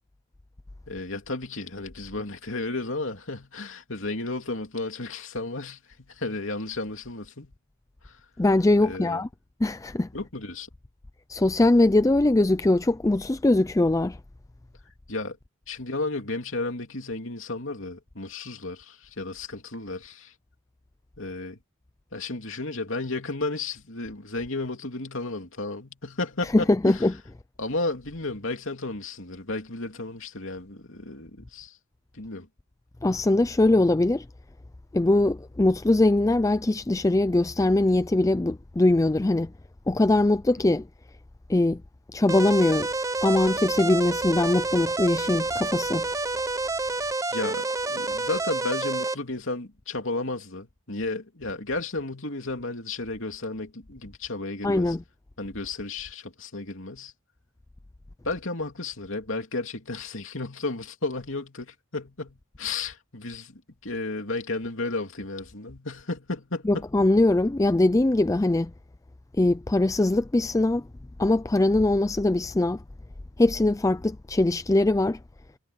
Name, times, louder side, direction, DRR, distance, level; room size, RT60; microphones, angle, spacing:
voice 1, 0.9-7.5 8.0-8.2 8.8-9.2 10.1-10.7 15.1-15.4 15.7-20.3 21.2-21.6 22.1-27.0 27.6-31.8 32.1-32.5 40.6-40.7 47.0-55.0 55.4-57.1 58.2-66.9, left 2 dB, 60° left, 3.1 m, -33 dB
voice 2, 8.4-9.3 9.6-10.1 11.3-14.2 26.5-27.1 33.0-34.3 34.9-39.5 39.9-40.9 41.5-41.8 42.1-42.9 43.2-46.1 54.6-55.0 66.7-68.7 69.4-70.9 71.2-72.8 73.4-75.2, left 2 dB, 15° left, 0.4 m, -22 dB
sound 1, 42.3-49.2, right 3 dB, 15° right, 0.8 m, -28 dB
head